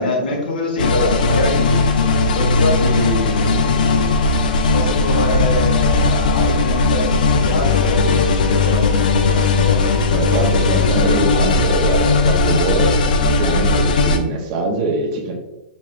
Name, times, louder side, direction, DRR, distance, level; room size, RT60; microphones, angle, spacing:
voice 1, 0.0-1.8 2.3-3.8 4.7-10.3 11.0-11.8, left 2 dB, 90° left, 2 dB, 1.2 m, -24 dB
sound 1, 0.8-14.2, left 3 dB, 60° left, 0.5 m, -17 dB
sound 2, 2.3-13.8, left 1 dB, 25° left, 0.9 m, -29 dB
voice 2, 10.1-15.3, right 2 dB, 30° right, 1 dB, 0.8 m, -23 dB
5.2 x 3.2 x 2.4 m, 1.0 s
hypercardioid pair, 165°, 5 cm